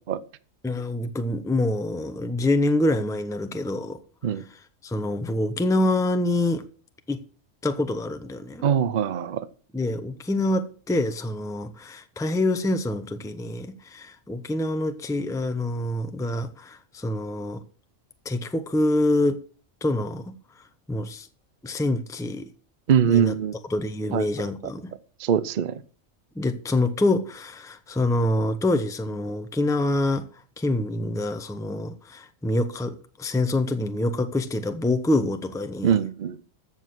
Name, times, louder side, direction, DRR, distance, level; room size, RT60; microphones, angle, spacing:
voice 1, 0.6-4.0 4.8-6.6 7.1-7.2 7.6-8.6 9.7-17.6 18.2-19.4 19.8-20.4 20.9-21.3 21.6-22.5 23.1-23.3 23.7-24.9 26.4-30.3 30.6-35.9, left 1 dB, 5° left, 0.8 m, -26 dB
voice 2, 8.6-9.5 22.9-23.6 24.1-24.3 25.2-25.8 35.8-36.4, right 8 dB, 45° right, 0.7 m, -22 dB
14.0 x 7.2 x 6.1 m
omnidirectional pair, 1.4 m